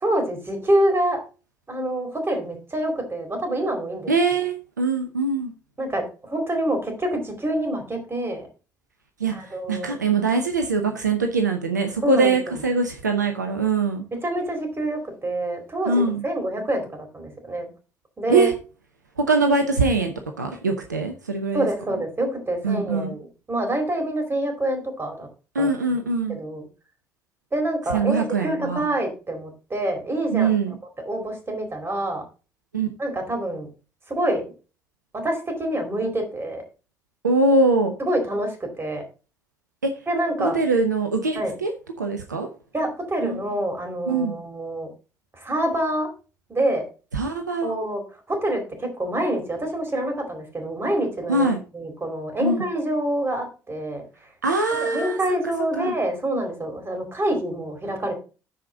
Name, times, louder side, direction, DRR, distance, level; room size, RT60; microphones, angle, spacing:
voice 1, 0.0-1.2 1.7-4.1 5.8-8.5 9.3-9.9 12.0-12.6 14.1-17.7 18.2-18.5 21.5-25.3 25.6-25.7 26.3-26.6 27.5-30.5 31.1-32.2 33.0-33.7 34.1-34.5 35.1-36.6 38.0-39.0 40.1-40.6 41.3-41.5 42.7-44.9 45.4-46.1 46.5-46.8 47.6-48.0 48.3-54.0 54.7-58.1, right 1 dB, 25° right, 4 dB, 4.3 m, -26 dB
voice 2, 4.1-5.5 9.2-14.0 15.9-16.2 18.3-18.5 19.2-21.7 22.6-23.1 25.5-26.4 27.9-28.9 30.3-30.7 32.7-32.9 37.2-37.9 39.8-39.9 40.4-41.7 42.0-42.5 43.2-43.4 44.1-44.4 47.1-47.7 51.3-51.6 52.4-52.7 54.4-55.2 55.8-55.9, right 3 dB, 85° right, 5 dB, 0.8 m, -22 dB
13.5 x 5.1 x 3.8 m, 0.33 s
figure-of-eight pair, 45°, 9 cm